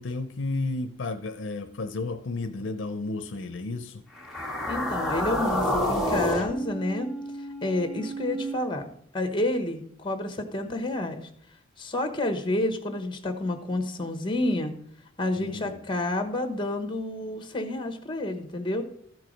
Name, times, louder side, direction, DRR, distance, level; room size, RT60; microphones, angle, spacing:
voice 1, 0.0-4.0 15.4-15.7, left 2 dB, 65° left, 8 dB, 0.6 m, -32 dB
sound 1, 4.2-8.5, equal, ahead, 1.5 m, -29 dB
voice 2, 4.7-7.1 7.6-8.9 9.1-11.3 11.8-14.7 15.2-18.8, left 1 dB, 25° left, 7 dB, 1.1 m, -29 dB
13.5 x 4.7 x 5.1 m, 0.68 s
head